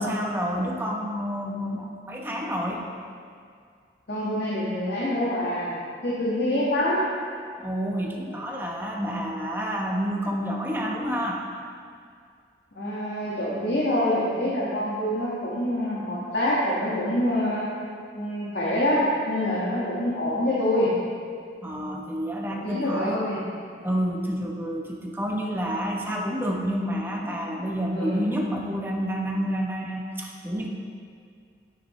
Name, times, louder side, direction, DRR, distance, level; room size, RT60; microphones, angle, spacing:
voice 1, 0.0-2.9 7.6-11.4 21.6-23.2 23.8-30.7, equal, 10° right, -1 dB, 0.9 m, -29 dB
voice 2, 4.1-5.7 6.0-7.1 12.7-17.7 18.1-19.0 19.3-20.9 22.6-23.4 27.9-28.2, left 1 dB, 65° left, -8 dB, 1.7 m, -26 dB
9.6 x 9.6 x 3.2 m, 2.2 s
head